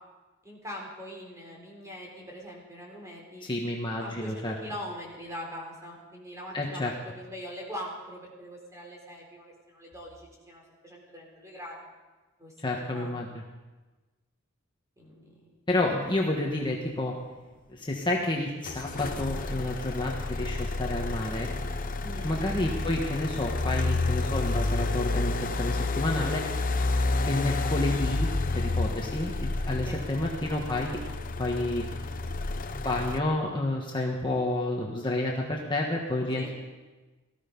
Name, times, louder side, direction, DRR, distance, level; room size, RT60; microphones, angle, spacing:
voice 1, 0.4-3.5 3.9-11.8 12.4-13.1 15.0-15.6 22.0-22.3 29.9-30.0 36.4-36.5, equal, 15° right, -1 dB, 4.1 m, -42 dB
voice 2, 3.4-4.5 6.5-6.9 12.6-13.3 15.7-17.1 17.7-21.5 22.2-26.4 27.3-31.0 31.4-31.8 32.5-36.5, left 1 dB, 25° left, -1 dB, 1.4 m, -30 dB
sound 1, 18.7-33.2, left 2 dB, 40° left, 0.7 m, -30 dB
18.5 x 14.0 x 5.4 m, 1.2 s
head